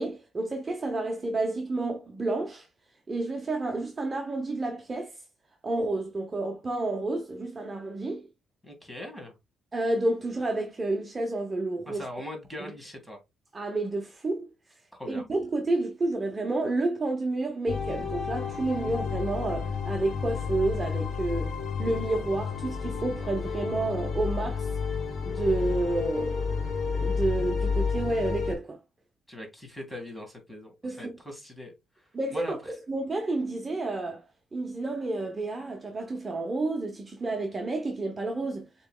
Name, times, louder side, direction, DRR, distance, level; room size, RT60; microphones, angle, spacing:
voice 1, 0.0-2.7 3.1-5.2 5.6-8.3 9.7-12.1 13.5-14.5 15.1-24.7 25.2-28.8 30.8-31.2 32.1-34.2 34.5-38.7, right 2 dB, 30° right, 0.7 m, -30 dB
voice 2, 8.6-9.3 11.9-13.2 14.9-15.2 29.3-32.5, left 1 dB, 5° left, 1.9 m, -41 dB
sound 1, 17.7-28.5, left 5 dB, 60° left, 1.6 m, -31 dB
6.8 x 3.0 x 2.2 m
cardioid pair, 90°, 0 cm